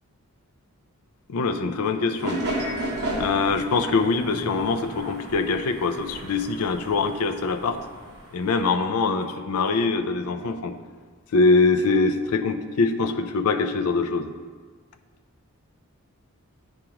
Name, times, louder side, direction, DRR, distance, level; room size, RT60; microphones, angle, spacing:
voice 1, 1.3-2.4 3.2-7.8 8.3-10.7 11.3-14.3, left 4 dB, 80° left, 8 dB, 0.4 m, -23 dB
sound 1, 2.2-8.7, right 1 dB, 50° right, 1.3 m, -34 dB
sound 2, 4.2-5.6, equal, 5° left, 0.6 m, -42 dB
9.0 x 4.8 x 2.9 m, 1.5 s
head